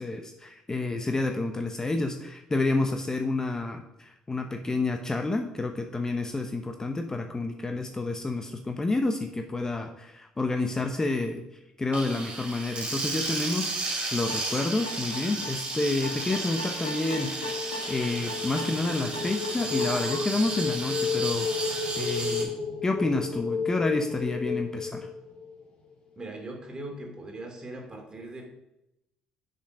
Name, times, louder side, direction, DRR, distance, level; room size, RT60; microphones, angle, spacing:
voice 1, 0.0-11.4 11.8-17.4 17.9-22.5 22.8-25.1, left 2 dB, 20° left, 6 dB, 0.8 m, -29 dB
sound 1, 11.9-22.4, right 3 dB, 45° right, 2.9 m, -33 dB
sound 2, 14.3-20.4, left 1 dB, 90° left, 1.4 m, -39 dB
sound 3, 16.7-25.7, left 5 dB, 45° left, 2.2 m, -33 dB
voice 2, 26.2-28.4, right 2 dB, 30° right, 1 dB, 2.6 m, -40 dB
6.9 x 5.3 x 5.3 m, 0.87 s
hypercardioid pair, 55°, 3 cm